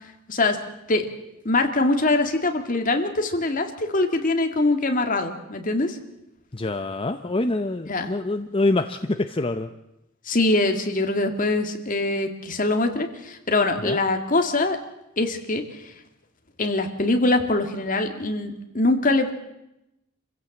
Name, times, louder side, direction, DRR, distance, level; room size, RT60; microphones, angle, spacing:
voice 1, 1.4-6.0 7.9-8.1 10.3-14.8 15.2-15.9 16.6-19.3, left 2 dB, 45° left, 5 dB, 2.2 m, -23 dB
voice 2, 6.5-9.7 13.8-14.0, left 2 dB, 30° left, 8 dB, 0.8 m, -25 dB
26.5 x 16.0 x 7.4 m, 0.88 s
head